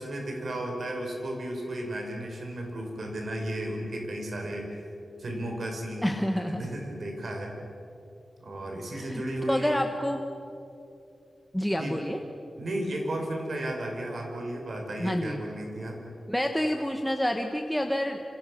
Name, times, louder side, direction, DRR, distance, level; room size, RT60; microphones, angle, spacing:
voice 1, 0.0-4.8 5.2-7.5 8.4-9.8 11.8-12.0 12.6-16.0, right 1 dB, 50° right, 1 dB, 5.6 m, -34 dB
voice 2, 6.0-6.6 8.9-9.2 9.5-10.2 11.5-12.2 15.0-15.4 16.3-18.2, equal, 5° left, 3 dB, 1.3 m, -28 dB
27.5 x 27.0 x 6.5 m, 2.8 s
wide cardioid pair, 160°, 0 cm